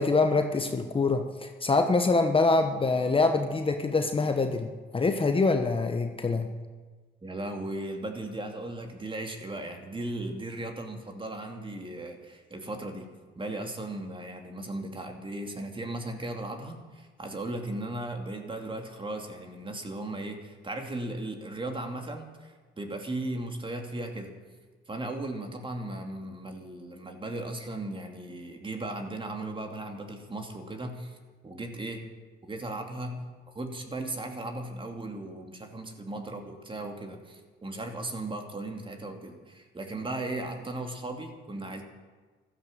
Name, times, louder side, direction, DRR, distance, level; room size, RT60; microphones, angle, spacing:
voice 1, 0.0-6.5, left 3 dB, 25° left, 6 dB, 1.2 m, -25 dB
voice 2, 7.2-13.1 13.3-24.3 24.9-31.2 31.4-32.0 32.4-33.2 33.5-41.8, right 2 dB, 25° right, 4 dB, 2.7 m, -37 dB
14.5 x 13.0 x 7.5 m, 1.4 s
cardioid pair, 90°, 20 cm